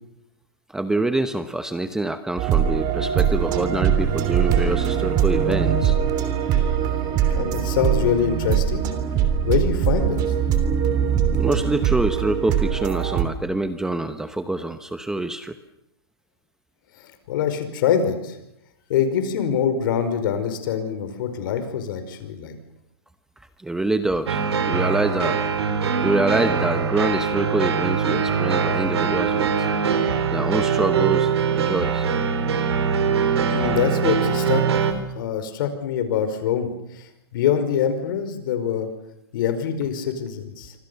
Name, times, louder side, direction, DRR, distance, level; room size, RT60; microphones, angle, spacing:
voice 1, 0.7-6.0 11.4-15.6 23.6-25.4 26.0-29.7 30.3-32.1, right 2 dB, 5° right, 10 dB, 0.9 m, -25 dB
sound 1, 2.4-13.2, right 8 dB, 30° right, 3.3 m, -22 dB
voice 2, 7.3-8.9 9.4-10.2 17.0-18.4 18.9-22.5 33.5-38.9 39.3-40.7, left 8 dB, 55° left, 9 dB, 5.1 m, -24 dB
sound 2, 24.3-34.9, right 6 dB, 85° right, 4.1 m, -22 dB
27.0 x 26.0 x 7.0 m, 0.81 s
hypercardioid pair, 155°, 13 cm